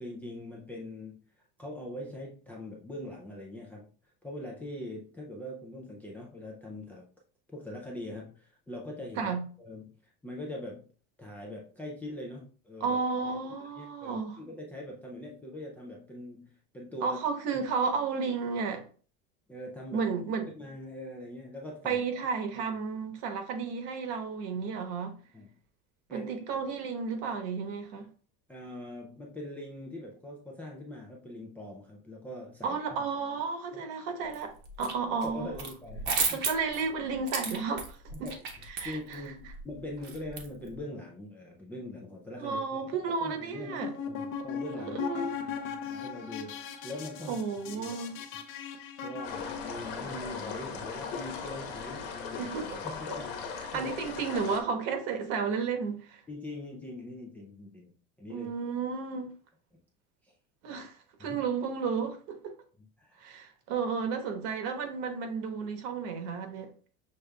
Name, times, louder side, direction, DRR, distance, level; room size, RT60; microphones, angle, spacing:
voice 1, 0.0-3.9 4.2-7.1 7.5-9.3 9.6-10.9 11.2-13.0 13.3-13.4 13.8-17.2 17.5-17.6 19.5-20.1 20.5-22.0 22.5-22.8 25.3-25.6 26.1-26.3 28.5-32.8 34.8-34.9 35.2-36.5 38.1-48.0 49.0-52.5 52.9-53.4 53.7-53.9 56.3-57.9 58.2-58.5 60.2-60.3 61.2-61.4 63.0-63.2, left 1 dB, 5° left, 0.4 m, -42 dB
voice 2, 12.8-14.4 17.0-18.8 19.9-20.5 21.8-25.2 26.1-28.1 32.6-34.5 34.8-35.5 36.3-38.3 38.7-39.2 42.4-43.9 44.8-45.3 47.3-48.2 52.4-52.8 53.1-53.2 53.7-56.2 58.3-59.3 60.6-60.9 61.2-62.5 63.2-66.7, right 5 dB, 60° right, 1.1 m, -32 dB
sound 1, 34.3-34.9 35.2-40.8, right 5 dB, 35° right, 0.9 m, -34 dB
sound 2, 43.7-50.0, left 6 dB, 45° left, 0.7 m, -38 dB
sound 3, 49.2-54.6, left 5 dB, 80° left, 1.2 m, -38 dB
6.5 x 3.3 x 2.3 m
cardioid pair, 175°, 29 cm